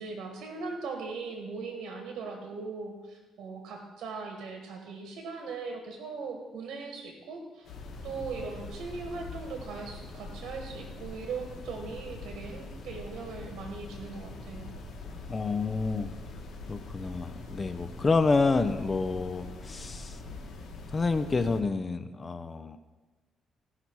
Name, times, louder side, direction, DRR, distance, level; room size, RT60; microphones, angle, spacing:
voice 1, 0.0-7.7 8.0-14.7, right 4 dB, 70° right, 3 dB, 1.6 m, -39 dB
sound 1, 7.6-21.6, left 3 dB, 65° left, 1.7 m, -43 dB
voice 2, 15.3-16.1 16.7-20.2 20.9-22.8, left 3 dB, 30° left, 10 dB, 0.6 m, -28 dB
16.5 x 5.8 x 4.6 m, 1.2 s
cardioid pair, 90°, 0 cm